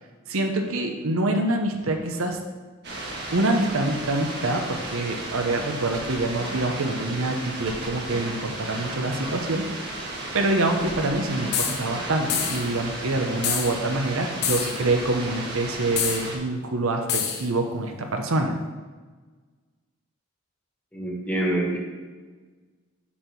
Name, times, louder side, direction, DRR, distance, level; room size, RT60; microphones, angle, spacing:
voice 1, 0.3-2.4 3.3-9.7 10.3-18.5, right 2 dB, 70° right, 4 dB, 0.9 m, -26 dB
sound 1, 2.8-16.4, right 2 dB, 50° right, 1.8 m, -34 dB
sound 2, 11.5-11.8 12.3-12.7 13.4-13.7 14.4-14.8 16.0-16.2 17.1-17.4, left 8 dB, 50° left, 0.9 m, -26 dB
voice 2, 20.9-21.8, right 1 dB, 5° left, -2 dB, 1.6 m, -26 dB
7.2 x 4.7 x 6.9 m, 1.4 s
head